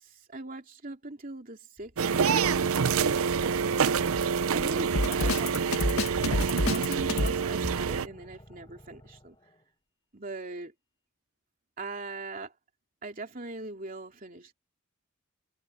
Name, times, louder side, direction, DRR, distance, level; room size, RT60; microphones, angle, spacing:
voice 1, 0.0-2.7 4.5-9.4 10.1-10.7 11.8-12.5 13.0-14.5, right 2 dB, 40° right, 3.0 m, -40 dB
sound 1, 2.0-8.1, right 6 dB, 80° right, 0.6 m, -27 dB
sound 2, 4.3-9.6, equal, 20° left, 5.2 m, -52 dB
Drum kit, 4.9-7.4, left 2 dB, 80° left, 1.7 m, -28 dB
head